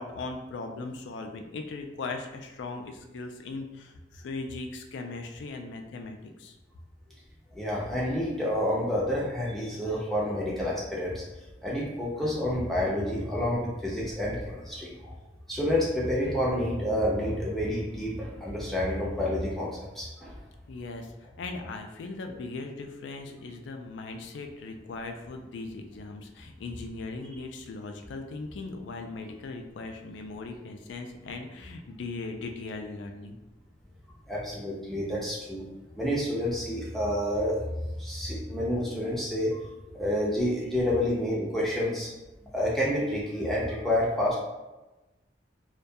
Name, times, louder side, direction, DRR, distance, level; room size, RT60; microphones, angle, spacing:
voice 1, 0.0-6.5 20.7-33.4, left 3 dB, 85° left, 4 dB, 0.3 m, -39 dB
voice 2, 7.5-11.2 11.6-15.1 15.5-20.3 34.3-35.6 36.0-37.6 38.0-39.6 39.9-42.1 42.5-44.4, left 1 dB, ahead, -5 dB, 0.4 m, -29 dB
2.2 x 2.2 x 2.6 m, 1.0 s
head